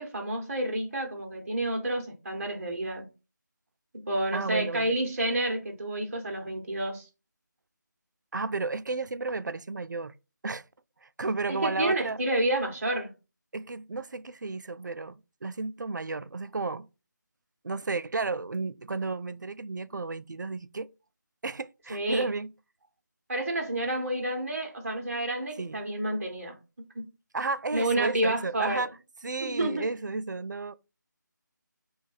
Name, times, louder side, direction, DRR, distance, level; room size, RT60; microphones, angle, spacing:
voice 1, 0.0-3.1 3.9-7.1 11.5-13.1 21.9-22.3 23.3-26.6 26.9-27.1 27.7-28.9 29.4-29.9, right 1 dB, 45° right, 1.2 m, -29 dB
voice 2, 4.3-4.9 8.3-10.1 10.4-10.6 11.0-12.2 13.5-16.9 17.6-20.9 21.4-22.5 25.6-25.8 27.3-28.9 29.2-30.7, right 3 dB, 65° right, 0.4 m, -33 dB
4.4 x 2.4 x 4.1 m
figure-of-eight pair, 160°, 10 cm